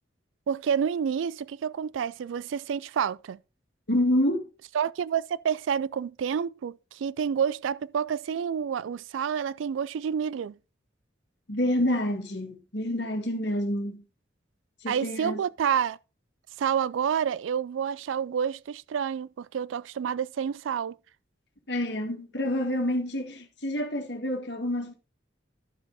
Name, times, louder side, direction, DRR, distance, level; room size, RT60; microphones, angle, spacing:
voice 1, 0.5-3.4 4.7-10.5 14.9-16.0 16.6-20.9, right 7 dB, 90° right, 0.3 m, -29 dB
voice 2, 3.9-4.4 11.5-14.0 14.8-15.4 21.7-24.9, left 1 dB, 65° left, 1.8 m, -28 dB
11.5 x 5.4 x 3.9 m
head